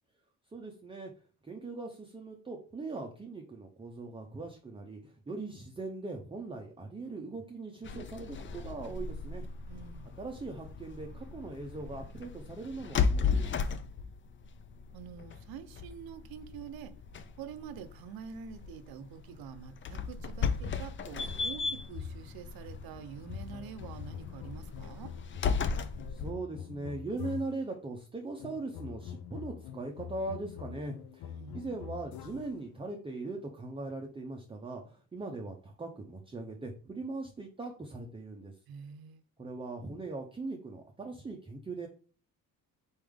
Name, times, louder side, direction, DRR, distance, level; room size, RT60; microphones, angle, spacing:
voice 1, 0.5-1.1 1.4-9.4 10.2-13.7 26.1-38.5 39.4-41.9, right 3 dB, 15° right, 0.6 m, -40 dB
sound 1, 7.8-26.3, left 5 dB, 35° left, 0.4 m, -36 dB
voice 2, 9.7-10.1 14.9-16.9 17.4-25.1 31.3-31.6 38.7-39.2, right 7 dB, 75° right, 0.6 m, -46 dB
sound 2, 23.5-27.7 28.4-32.7, left 9 dB, 80° left, 0.5 m, -45 dB
4.3 x 3.4 x 3.6 m
cardioid pair, 120°, 36 cm